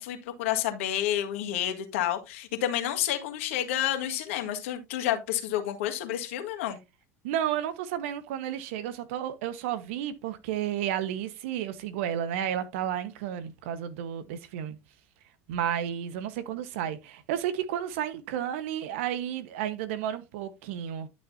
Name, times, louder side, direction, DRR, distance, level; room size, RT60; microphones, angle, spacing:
voice 1, 0.0-6.8, left 12 dB, 75° left, 1.7 m, -30 dB
voice 2, 7.2-14.8 15.5-21.1, right 10 dB, 75° right, 1.1 m, -32 dB
11.5 x 6.5 x 2.7 m
hypercardioid pair, 85°, 7 cm